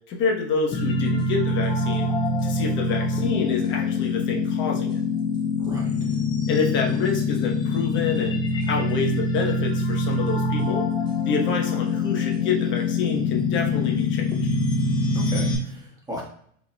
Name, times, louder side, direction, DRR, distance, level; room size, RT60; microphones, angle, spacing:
voice 1, 0.1-2.1 2.4-5.0 6.5-8.4 8.7-10.9 11.2-14.3, left 5 dB, 30° left, 0 dB, 1.0 m, -27 dB
sound 1, 0.7-15.6, left 3 dB, 15° left, 0.4 m, -24 dB
voice 2, 5.6-5.9 15.1-16.2, left 1 dB, 10° right, -3 dB, 1.4 m, -35 dB
4.1 x 3.7 x 2.2 m, 0.62 s
supercardioid pair, 130°, 37 cm